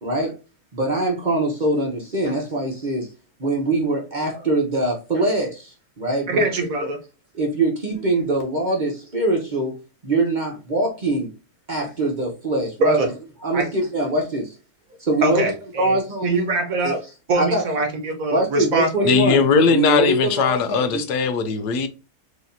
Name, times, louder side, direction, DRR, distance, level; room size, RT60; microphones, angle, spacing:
voice 1, 0.0-0.3 0.7-3.1 3.4-6.5 7.3-9.7 10.0-11.3 11.7-13.0 13.4-14.5 15.0-15.5 15.8-16.5 16.8-17.0 17.4-17.6 18.3-21.0, right 2 dB, 35° right, 0.9 m, -23 dB
voice 2, 6.3-7.0 12.8-13.1 13.5-13.7 15.2-16.0 16.2-17.0 17.3-19.2, right 2 dB, 60° right, 1.3 m, -23 dB
voice 3, 19.0-21.9, left 5 dB, 75° left, 1.2 m, -19 dB
4.9 x 2.8 x 2.6 m
omnidirectional pair, 1.8 m